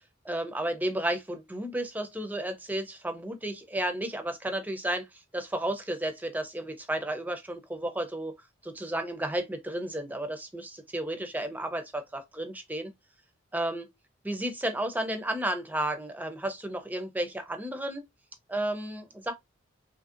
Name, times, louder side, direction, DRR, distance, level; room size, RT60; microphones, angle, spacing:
voice 1, 0.2-8.3 8.6-12.9 13.5-13.9 14.2-18.0 18.5-19.3, right 1 dB, 10° right, 0.4 m, -32 dB
3.1 x 2.6 x 2.4 m
head